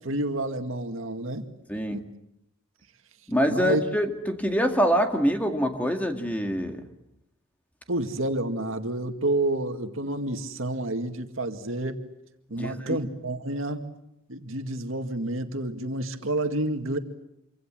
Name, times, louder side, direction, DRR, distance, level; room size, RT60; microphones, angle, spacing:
voice 1, 0.0-1.5 1.9-2.0 3.5-3.8 7.9-12.0 12.5-13.9 14.3-17.0, right 2 dB, 70° right, 6 dB, 2.1 m, -29 dB
voice 2, 1.7-2.0 3.3-6.8 12.6-13.0, equal, 5° left, 4 dB, 2.1 m, -25 dB
26.5 x 25.5 x 7.6 m, 0.81 s
head